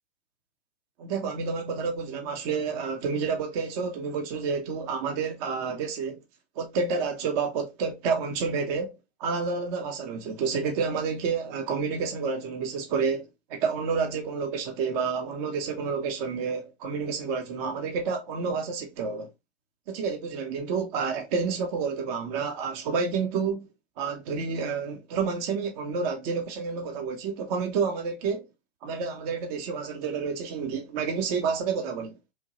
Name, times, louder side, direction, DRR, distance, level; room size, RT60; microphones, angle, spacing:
voice 1, 1.0-6.2 6.6-19.3 19.9-23.7 24.0-28.5 28.8-32.2, right 5 dB, 40° right, 0.8 m, -29 dB
2.9 x 2.2 x 2.8 m
hypercardioid pair, 115°, 31 cm